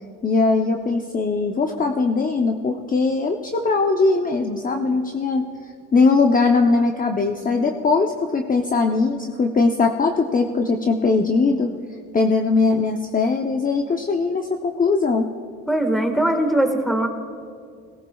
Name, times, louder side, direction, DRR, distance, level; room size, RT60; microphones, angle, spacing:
voice 1, 0.2-5.5 5.9-11.7 12.1-15.3, left 4 dB, 30° left, 3 dB, 0.7 m, -20 dB
voice 2, 15.7-17.1, right 1 dB, ahead, 4 dB, 1.6 m, -20 dB
17.5 x 16.5 x 2.3 m, 2.2 s
cardioid pair, 90°, 30 cm